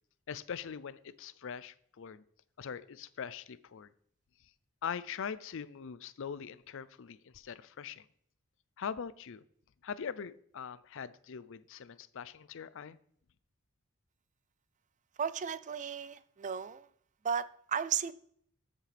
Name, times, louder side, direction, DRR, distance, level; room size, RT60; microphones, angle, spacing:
voice 1, 0.3-2.2 2.6-3.9 4.8-8.1 8.8-9.4 9.8-13.0, left 7 dB, 60° left, 0.5 m, -42 dB
voice 2, 15.2-16.9 17.2-18.1, right 7 dB, 35° right, 0.4 m, -34 dB
13.5 x 7.4 x 3.4 m
head